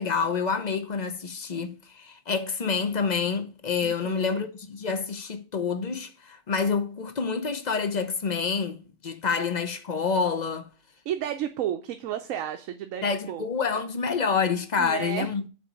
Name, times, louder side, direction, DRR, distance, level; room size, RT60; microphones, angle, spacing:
voice 1, 0.0-10.7 13.0-15.5, left 5 dB, 40° left, 0.7 m, -28 dB
voice 2, 3.8-4.4 11.1-13.4 14.8-15.3, right 10 dB, 80° right, 1.0 m, -32 dB
6.9 x 3.8 x 6.2 m
omnidirectional pair, 1.4 m